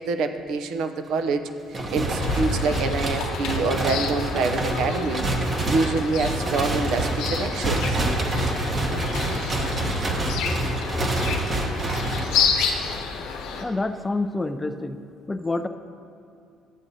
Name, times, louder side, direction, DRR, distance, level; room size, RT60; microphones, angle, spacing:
voice 1, 0.0-5.3 5.7-8.0, right 4 dB, 75° right, 7 dB, 0.5 m, -26 dB
sound 1, 1.7-12.9, right 2 dB, 30° right, 0.9 m, -27 dB
sound 2, 2.2-13.6, left 5 dB, 85° left, 0.9 m, -30 dB
sound 3, 6.0-6.1 6.9-7.2 7.6-8.0 8.3-8.7 9.0-9.3 9.6-10.7 10.9-11.3, left 2 dB, 55° left, 0.9 m, -34 dB
voice 2, 13.6-15.0 15.3-15.7, left 2 dB, 15° left, 9 dB, 0.3 m, -27 dB
12.5 x 7.3 x 2.7 m, 2.6 s
cardioid pair, 125°, 0 cm